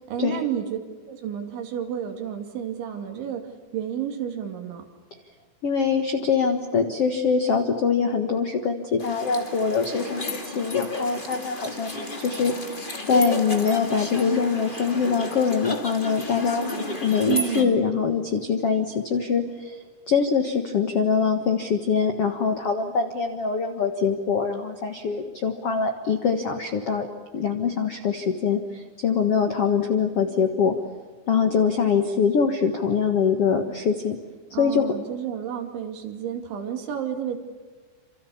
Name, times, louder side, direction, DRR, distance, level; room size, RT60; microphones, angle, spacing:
voice 1, 0.1-0.7 1.1-4.9 17.3-17.8 34.5-37.4, right 9 dB, 80° right, 4 dB, 4.9 m, -31 dB
voice 2, 5.6-12.6 13.1-16.7 17.0-19.8 20.1-27.1 27.3-30.8 31.3-34.2 34.6-34.9, left 6 dB, 85° left, 6 dB, 1.3 m, -23 dB
sound 1, 9.0-17.6, left 2 dB, 20° left, 1.6 m, -32 dB
28.0 x 27.0 x 7.1 m, 1.4 s
omnidirectional pair, 5.2 m